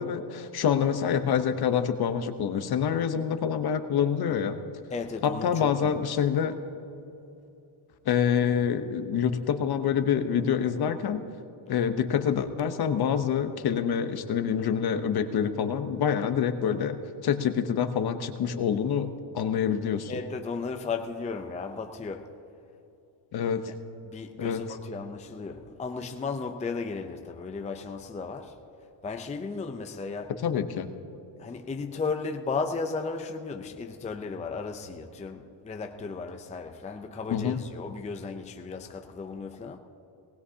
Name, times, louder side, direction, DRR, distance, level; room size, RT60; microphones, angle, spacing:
voice 1, 0.0-4.6 5.2-6.5 8.1-11.2 11.7-17.0 17.2-20.1 23.3-23.7 24.4-24.6 30.4-30.9 37.3-37.6, left 8 dB, 50° left, 1.0 m, -26 dB
voice 2, 4.9-6.0 20.1-22.4 23.7-23.8 24.1-28.6 29.0-30.4 31.4-39.8, left 4 dB, 15° left, 0.5 m, -35 dB
19.5 x 19.0 x 2.8 m
cardioid pair, 130°, 48 cm